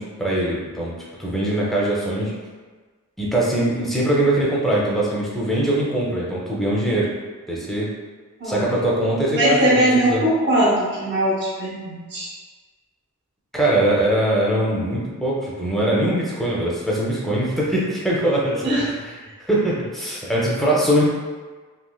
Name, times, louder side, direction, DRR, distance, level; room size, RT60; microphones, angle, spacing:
voice 1, 0.0-2.3 3.2-7.1 7.5-7.9 8.4-10.2 13.5-19.2 19.5-21.0, right 1 dB, ahead, -6 dB, 0.5 m, -22 dB
voice 2, 9.3-12.3 18.6-18.8, right 1 dB, 50° right, -6 dB, 0.8 m, -20 dB
3.1 x 2.9 x 2.3 m, 1.4 s
head